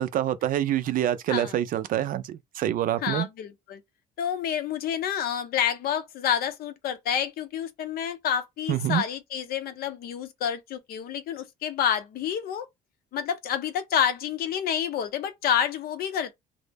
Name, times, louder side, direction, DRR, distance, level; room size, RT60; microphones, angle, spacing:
voice 1, 0.0-3.3 8.7-9.0, right 11 dB, 55° right, 0.4 m, -26 dB
voice 2, 3.0-3.8 4.2-12.7 13.1-16.3, left 9 dB, 65° left, 0.6 m, -28 dB
2.0 x 2.0 x 3.3 m
cardioid pair, 110°, 17 cm